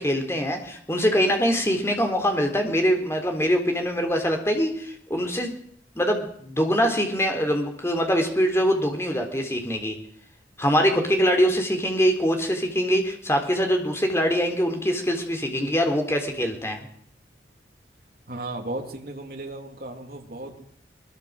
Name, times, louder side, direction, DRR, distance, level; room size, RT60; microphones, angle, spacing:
voice 1, 0.0-5.6 6.0-10.0 10.6-16.9, equal, 15° left, 4 dB, 3.8 m, -23 dB
voice 2, 18.3-20.6, right 2 dB, 50° right, 2 dB, 3.3 m, -35 dB
22.0 x 21.5 x 6.6 m, 0.62 s
head